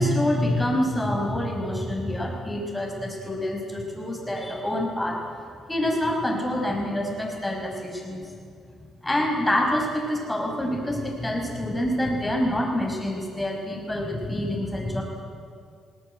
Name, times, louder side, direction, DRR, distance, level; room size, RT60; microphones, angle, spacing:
voice 1, 0.0-5.2 5.7-8.2 9.0-15.0, left 1 dB, 10° left, 2 dB, 5.2 m, -26 dB
20.0 x 18.5 x 9.2 m, 2.3 s
cardioid pair, 90°, 0 cm